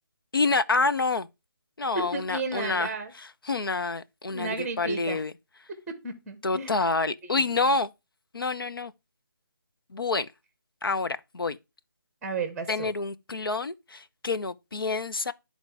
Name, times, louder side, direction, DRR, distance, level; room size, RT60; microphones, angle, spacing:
voice 1, 0.3-1.3 1.8-5.3 6.4-7.9 8.3-8.9 9.9-10.3 10.8-11.6 12.7-15.3, left 3 dB, 85° left, 0.8 m, -28 dB
voice 2, 1.9-3.1 4.3-5.2 5.9-6.7 7.3-7.4 12.2-12.9, right 3 dB, 5° right, 0.8 m, -33 dB
10.5 x 4.0 x 4.7 m
figure-of-eight pair, 170°, 12 cm